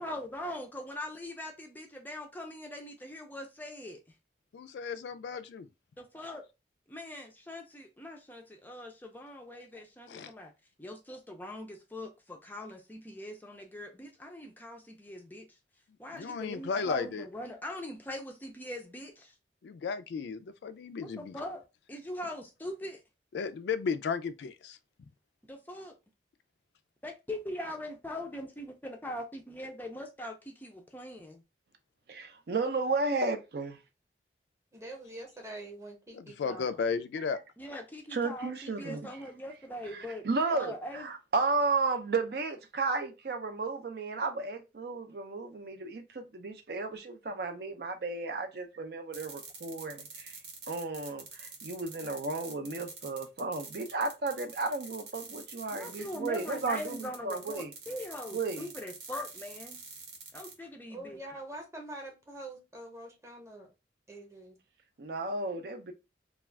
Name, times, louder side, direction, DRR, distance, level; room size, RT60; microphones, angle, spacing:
voice 1, 0.0-4.0 6.0-6.5 6.9-10.5 10.8-15.5 16.0-19.3 21.0-21.6 21.9-23.0 25.5-26.0 27.0-31.4 37.6-41.1 55.7-59.8 60.3-61.2, left 1 dB, 10° left, 0.4 m, -41 dB
voice 2, 4.5-5.7 10.1-10.3 16.1-17.3 19.6-21.4 23.3-24.8 36.1-37.4, left 5 dB, 80° left, 0.3 m, -34 dB
voice 3, 32.1-33.8 38.1-39.1 39.9-50.4 50.7-57.7 58.3-58.7 65.0-65.9, right 3 dB, 65° right, 0.5 m, -33 dB
voice 4, 34.7-36.8 60.9-63.7 64.1-64.6, right 1 dB, 15° right, 0.8 m, -45 dB
sound 1, 49.1-60.5, right 4 dB, 90° right, 0.9 m, -46 dB
2.3 x 2.3 x 3.2 m
head